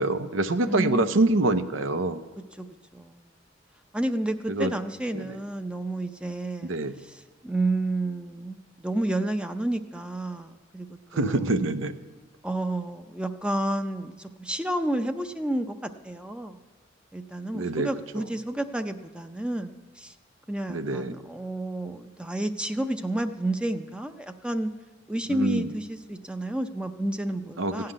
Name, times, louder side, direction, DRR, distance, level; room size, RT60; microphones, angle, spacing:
voice 1, 0.0-2.2 4.5-4.7 5.1-5.4 6.6-6.9 11.1-11.9 17.5-17.9 20.7-21.1 25.3-25.7 27.6-27.9, right 2 dB, 85° right, 11 dB, 0.7 m, -25 dB
voice 2, 0.6-1.2 2.6-2.7 2.9-3.3 3.9-10.9 11.1-11.5 12.4-16.6 17.1-20.1 20.5-24.7 25.1-27.9, right 1 dB, 5° right, 8 dB, 0.5 m, -30 dB
15.0 x 5.8 x 9.8 m, 1.3 s
head